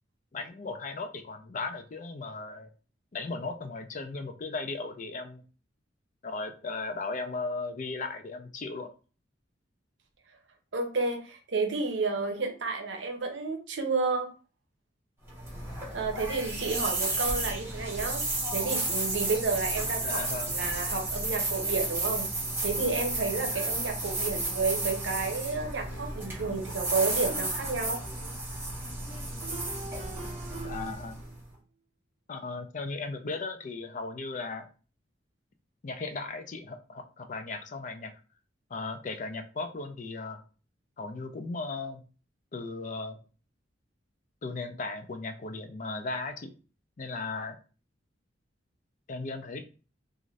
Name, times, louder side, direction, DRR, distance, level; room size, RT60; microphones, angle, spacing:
voice 1, 0.3-2.7 3.1-5.4 6.2-8.9 20.0-20.6 30.6-31.1 32.3-34.7 35.8-38.1 38.7-40.4 41.0-42.0 42.5-43.2 44.4-46.5 47.0-47.6 49.1-49.6, left 3 dB, 45° left, 6 dB, 0.4 m, -36 dB
voice 2, 10.7-14.3 15.9-18.2 18.5-22.3 22.6-28.0, right 4 dB, 75° right, 4 dB, 0.7 m, -31 dB
sound 1, 15.2-31.4, right 2 dB, 15° right, 1.0 m, -33 dB
sound 2, 29.4-31.4, right 4 dB, 40° right, 0.7 m, -43 dB
2.5 x 2.5 x 3.1 m, 0.35 s
head